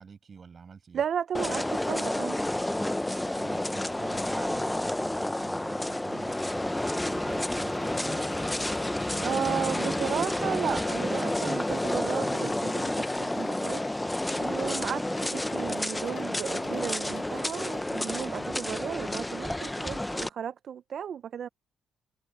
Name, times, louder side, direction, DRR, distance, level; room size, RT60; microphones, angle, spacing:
voice 1, 0.0-1.0 3.3-8.3, right 5 dB, 40° right, 7.4 m, -47 dB
voice 2, 0.9-2.4 9.2-13.9 14.4-21.5, right 8 dB, 60° right, 0.5 m, -34 dB
sound 1, 1.3-20.3, left 1 dB, 10° left, 0.7 m, -30 dB
Wind chime, 6.3-18.6, left 7 dB, 50° left, 1.7 m, -46 dB
Wind instrument woodwind instrument, 6.7-11.8, right 3 dB, 25° right, 7.7 m, -52 dB
cardioid pair, 90°, 0 cm